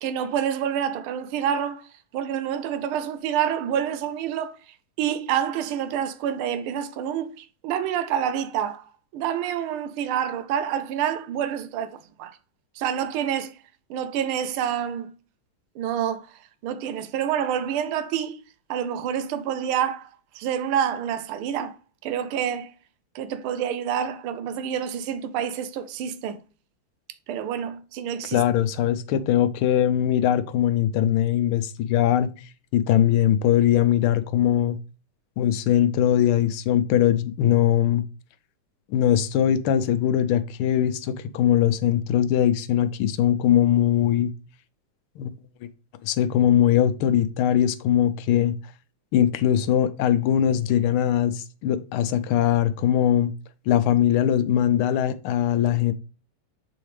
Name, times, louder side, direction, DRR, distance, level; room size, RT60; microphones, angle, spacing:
voice 1, 0.0-1.9 2.1-4.5 5.0-12.3 12.8-13.6 13.9-15.1 15.8-16.3 16.6-18.4 18.7-20.1 20.3-21.8 22.0-22.7 23.1-26.4 27.3-28.4, right 9 dB, 85° right, 1.5 m, -27 dB
voice 2, 28.3-32.3 32.7-34.8 35.4-38.0 38.9-44.3 45.2-45.3 46.0-48.5 49.1-53.3 53.7-55.9, left 10 dB, 85° left, 1.5 m, -21 dB
7.9 x 4.0 x 3.2 m
omnidirectional pair, 2.3 m